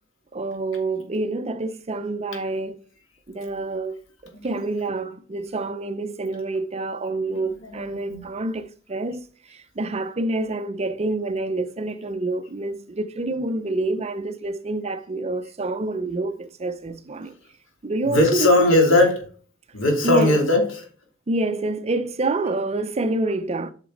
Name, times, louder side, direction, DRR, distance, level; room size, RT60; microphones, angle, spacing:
voice 1, 0.3-2.8 3.3-4.0 4.2-9.2 9.8-17.3 17.8-18.7 20.0-20.3 21.3-23.7, right 2 dB, 35° right, 0.6 m, -27 dB
voice 2, 7.3-8.2 18.0-19.2 19.7-20.9, left 2 dB, 80° left, 2.9 m, -20 dB
8.2 x 5.9 x 3.8 m
head